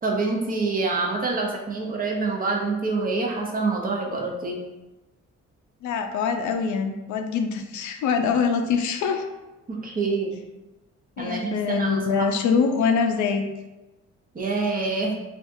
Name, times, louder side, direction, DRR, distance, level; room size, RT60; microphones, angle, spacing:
voice 1, 0.0-4.6 9.7-10.4 11.2-12.3 14.3-15.2, right 3 dB, 30° right, 0 dB, 0.6 m, -26 dB
voice 2, 5.8-9.3 11.2-13.5, left 5 dB, 75° left, 5 dB, 0.4 m, -24 dB
3.4 x 2.4 x 2.6 m, 1.1 s
cardioid pair, 90°, 30 cm